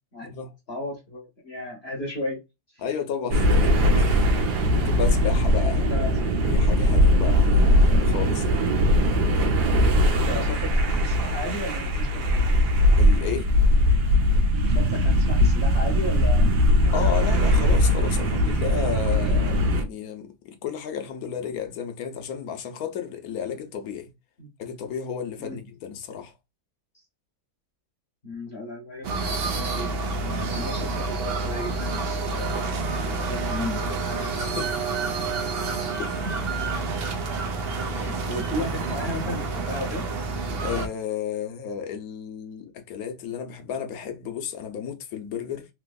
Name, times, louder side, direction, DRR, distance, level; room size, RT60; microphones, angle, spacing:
voice 1, 0.7-2.4 2.7-2.8 5.9-6.3 10.1-12.2 14.6-17.2 24.4-24.5 25.4-25.6 26.9-27.0 28.2-32.8 33.1-33.9 36.2-36.3 37.9-40.1, left 1 dB, 50° left, 0.9 m, -35 dB
voice 2, 2.8-4.4 4.7-5.9 6.4-8.7 13.0-13.5 16.9-24.1 24.6-26.3 34.3-34.7 36.0-36.3 37.8-38.1 40.6-45.7, left 8 dB, 70° left, 1.1 m, -33 dB
sound 1, 3.3-19.8, equal, 80° right, 1.3 m, -20 dB
sound 2, 29.0-40.9, right 3 dB, 65° right, 0.6 m, -28 dB
3.3 x 2.9 x 2.2 m
omnidirectional pair, 1.7 m